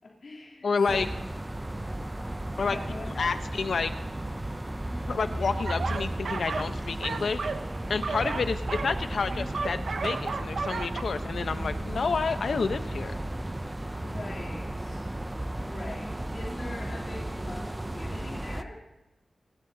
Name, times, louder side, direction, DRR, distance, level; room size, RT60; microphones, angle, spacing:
voice 1, 0.0-1.1 2.6-3.4 14.0-15.0 15.6-18.8, left 2 dB, 70° left, -6 dB, 3.2 m, -42 dB
voice 2, 0.6-1.1 2.6-2.8 3.2-3.9 5.1-7.4 7.9-13.1, left 4 dB, 90° left, 9 dB, 0.9 m, -29 dB
sound 1, 0.9-18.6, right 1 dB, 15° right, 0.5 m, -34 dB
sound 2, 5.7-6.7 7.0-11.0, right 4 dB, 85° right, 0.7 m, -33 dB
28.5 x 12.5 x 2.8 m, 0.93 s
wide cardioid pair, 110°, 0 cm